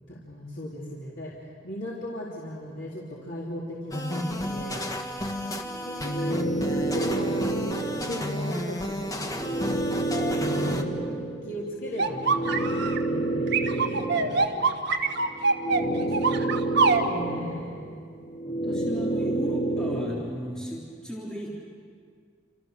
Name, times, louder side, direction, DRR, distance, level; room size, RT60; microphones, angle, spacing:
voice 1, 0.1-4.9 5.9-6.4 6.7-7.5 7.7-9.8 10.6-11.0 11.4-12.5 12.9-15.3 15.9-16.2 17.1-18.1, equal, 75° left, -6 dB, 3.8 m, -38 dB
sound 1, 3.9-10.8, left 1 dB, 20° left, 1.7 m, -32 dB
sound 2, 5.7-8.4 8.9-14.7 15.1-20.1, right 2 dB, 45° left, 3.8 m, -29 dB
sound 3, 12.0-13.0 13.5-17.0, right 4 dB, 65° right, 1.6 m, -24 dB
voice 2, 15.7-16.6 18.4-21.7, equal, 5° left, -5 dB, 3.8 m, -36 dB
29.0 x 28.0 x 6.8 m, 2.1 s
head